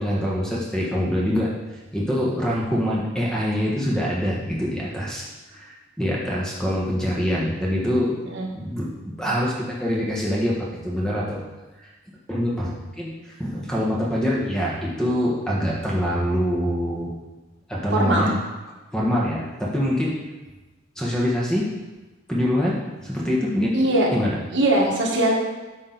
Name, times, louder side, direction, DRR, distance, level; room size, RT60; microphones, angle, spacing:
voice 1, 0.0-1.5 1.9-8.1 8.5-8.9 9.2-11.4 12.3-17.1 17.7-18.3 18.9-20.2 21.0-21.7 22.3-23.7 24.1-24.4, equal, 5° left, -4 dB, 1.3 m, -24 dB
voice 2, 17.9-18.3 23.7-24.1 24.5-25.3, right 1 dB, 65° right, -2 dB, 1.6 m, -20 dB
8.8 x 5.8 x 4.0 m, 1.2 s
head